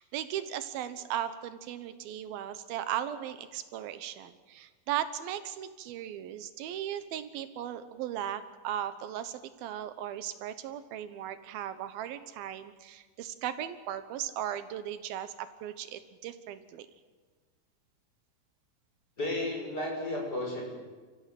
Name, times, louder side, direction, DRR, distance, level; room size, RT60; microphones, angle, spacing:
voice 1, 0.0-16.9, right 11 dB, 85° right, 12 dB, 2.9 m, -37 dB
voice 2, 19.2-20.7, left 1 dB, 25° left, -2 dB, 7.4 m, -33 dB
29.5 x 15.5 x 7.7 m, 1.4 s
omnidirectional pair, 4.2 m